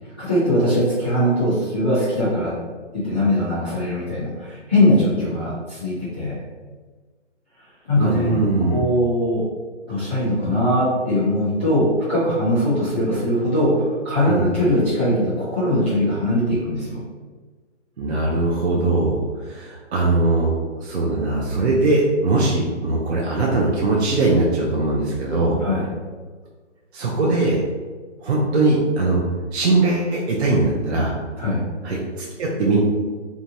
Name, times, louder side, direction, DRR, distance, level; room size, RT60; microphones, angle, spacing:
voice 1, 0.2-2.5 2.9-6.3 7.8-8.3 8.7-9.5 9.9-17.0 25.6-25.9 31.4-31.6, left 1 dB, 10° left, -15 dB, 0.5 m, -21 dB
voice 2, 8.0-8.8 14.3-14.4 18.0-20.5 20.8-25.6 26.9-27.6 28.2-29.2 29.5-31.1 31.8-32.8, right 2 dB, 60° right, -3 dB, 0.6 m, -20 dB
2.8 x 2.2 x 2.8 m, 1.4 s
hypercardioid pair, 160°, 37 cm